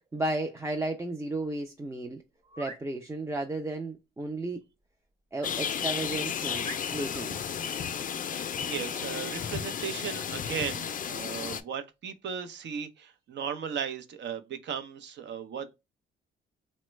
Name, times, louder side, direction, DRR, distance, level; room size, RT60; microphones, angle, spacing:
voice 1, 0.1-2.2 2.6-4.6 5.3-6.7 6.9-7.4, right 2 dB, 15° right, 0.4 m, -33 dB
sound 1, 2.4-2.9 5.4-5.6 6.1-6.2 6.6-7.3 10.0-10.3 10.7-10.9, right 1 dB, 30° right, 1.2 m, -45 dB
sound 2, 5.4-11.6, left 8 dB, 45° left, 0.4 m, -33 dB
voice 2, 8.3-15.7, right 7 dB, 65° right, 0.7 m, -36 dB
3.0 x 2.2 x 3.1 m
cardioid pair, 90°, 20 cm